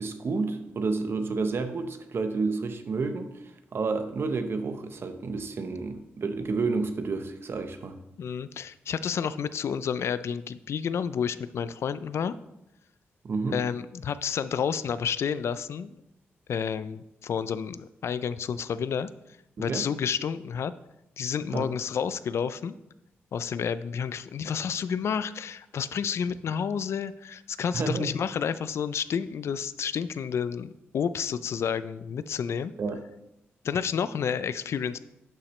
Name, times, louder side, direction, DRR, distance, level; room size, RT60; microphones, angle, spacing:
voice 1, 0.0-3.3 3.7-8.0 13.2-13.6 19.6-19.9 21.5-21.7 27.7-28.1 32.8-33.0, right 4 dB, 60° right, 8 dB, 0.9 m, -30 dB
voice 2, 8.2-12.4 13.5-16.0 16.5-19.1 19.6-20.7 21.2-22.8 23.3-32.7 33.6-35.0, left 7 dB, 70° left, 14 dB, 0.4 m, -30 dB
11.5 x 5.8 x 3.2 m, 0.88 s
cardioid pair, 80°, 5 cm